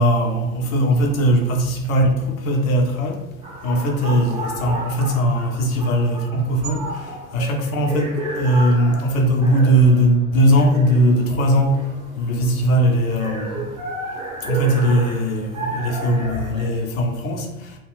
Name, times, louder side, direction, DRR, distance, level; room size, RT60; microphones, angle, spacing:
voice 1, 0.0-3.2 3.6-11.8 12.2-13.7 14.4-17.8, right 1 dB, 65° left, 0.8 m, -19 dB
sound 1, 3.4-16.7, right 2 dB, 10° right, 0.4 m, -33 dB
2.3 x 2.2 x 3.5 m
figure-of-eight pair, 85°, 44 cm